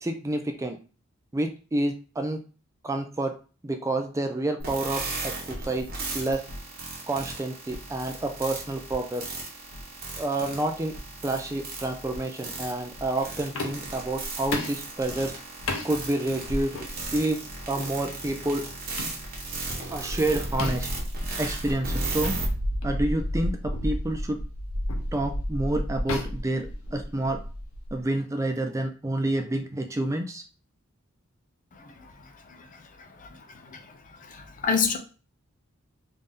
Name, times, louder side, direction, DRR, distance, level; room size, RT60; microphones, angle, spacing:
voice 1, 0.0-0.8 1.3-2.4 2.8-3.3 3.6-5.9 6.1-6.4 7.1-9.2 10.2-10.9 11.2-15.3 15.8-16.9 17.1-17.4 17.7-18.6 19.9-20.9 21.4-22.4 22.8-24.4 25.1-26.7 26.9-27.4 27.9-30.4, right 1 dB, 15° right, 5 dB, 0.4 m, -28 dB
sound 1, 4.6-22.5, right 3 dB, 45° right, 1.2 m, -36 dB
sound 2, 13.5-14.0 14.5-14.9 15.7-15.9 16.7-16.9 17.8-18.0 19.0-19.2 20.6-21.0 22.2-22.4 22.8-23.0 23.7-24.0 24.9-25.1 26.1-27.3, left 3 dB, 85° left, 0.7 m, -34 dB
sound 3, 13.8-15.1 15.9-16.0 16.5-17.3 18.9-28.0, equal, 80° right, 0.8 m, -33 dB
voice 2, 34.3-35.0, left 6 dB, 40° left, 6 dB, 0.6 m, -26 dB
3.3 x 2.6 x 3.6 m, 0.36 s
head